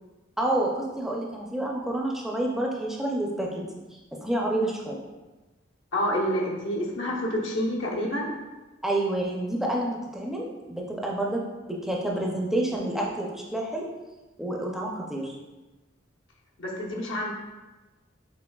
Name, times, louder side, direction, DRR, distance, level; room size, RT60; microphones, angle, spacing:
voice 1, 0.4-3.5 4.2-5.0 8.8-11.4 11.7-13.9 14.4-15.3, right 1 dB, ahead, -2 dB, 0.4 m, -28 dB
voice 2, 5.9-8.3 16.6-17.3, equal, 85° left, -3 dB, 0.9 m, -28 dB
6.1 x 3.2 x 2.3 m, 1.2 s
head